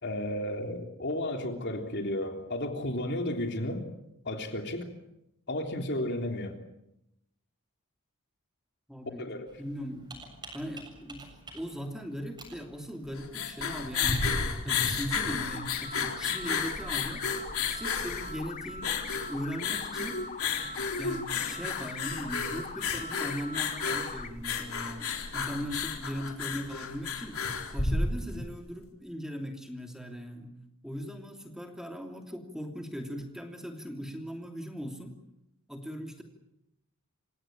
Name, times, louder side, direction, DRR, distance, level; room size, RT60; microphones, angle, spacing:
voice 1, 0.0-3.9 4.2-4.9 5.5-6.6 9.2-9.5, left 1 dB, 50° left, 4 dB, 3.5 m, -33 dB
voice 2, 8.9-9.3 9.6-14.2 14.6-17.2 17.6-20.2 21.0-27.4 27.7-30.5 30.8-35.2 35.7-36.2, equal, ahead, 3 dB, 2.9 m, -39 dB
Computer keyboard, 9.5-16.3, right 2 dB, 20° right, 7.4 m, -52 dB
sound 1, 13.0-28.5, left 5 dB, 70° left, 4.1 m, -32 dB
sound 2, 15.5-24.3, left 4 dB, 35° left, 1.8 m, -42 dB
28.5 x 17.5 x 9.0 m, 0.84 s
head